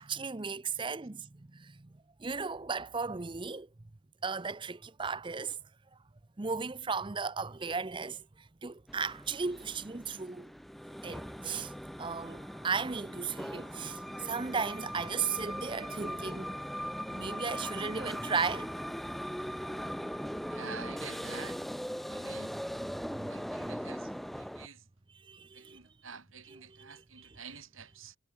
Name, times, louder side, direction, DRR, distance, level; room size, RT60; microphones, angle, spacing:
voice 1, 0.0-1.9 2.2-3.7 4.2-5.6 6.4-10.5 11.0-11.7 12.0-16.6 17.1-18.7 19.7-19.8 22.9-23.3 25.2-25.8 26.5-27.0, right 5 dB, 25° right, 0.6 m, -36 dB
sound 1, 8.9-24.7, equal, ahead, 1.1 m, -40 dB
voice 2, 20.5-21.6 22.1-22.5 23.3-24.9 25.5-28.2, right 6 dB, 90° right, 6.1 m, -48 dB
head